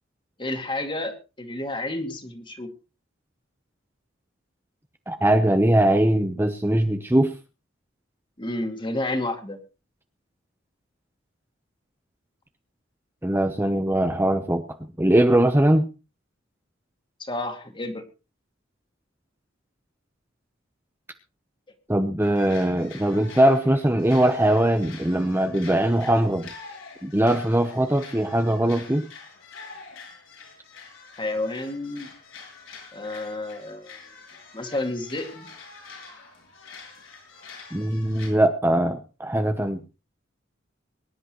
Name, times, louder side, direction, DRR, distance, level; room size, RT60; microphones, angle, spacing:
voice 1, 0.4-2.7 8.4-9.6 17.2-18.0 31.2-32.1 32.9-34.0 34.5-35.5, left 2 dB, 25° left, 6 dB, 2.3 m, -30 dB
voice 2, 5.1-7.3 13.2-14.7 15.0-15.9 21.9-26.5 27.0-29.1 37.7-39.8, right 1 dB, 10° right, 7 dB, 0.9 m, -21 dB
sound 1, 22.2-38.3, left 4 dB, 80° left, 7.3 m, -46 dB
23.5 x 11.0 x 3.1 m, 0.31 s
head